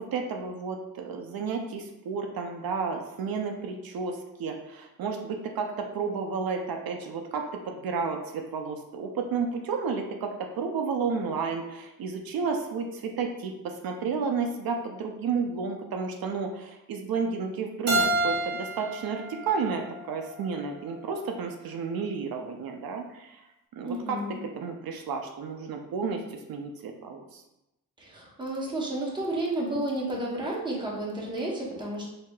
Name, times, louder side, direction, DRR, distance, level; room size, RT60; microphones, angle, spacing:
voice 1, 0.0-23.4 23.7-24.2 24.5-27.4, right 5 dB, 80° right, 3 dB, 0.5 m, -32 dB
Keyboard (musical), 17.9-20.7, right 1 dB, 50° right, 0.8 m, -30 dB
voice 2, 23.8-24.4 28.0-32.1, right 1 dB, 15° right, -4 dB, 0.8 m, -31 dB
4.6 x 2.8 x 2.2 m, 0.91 s
wide cardioid pair, 145°, 35 cm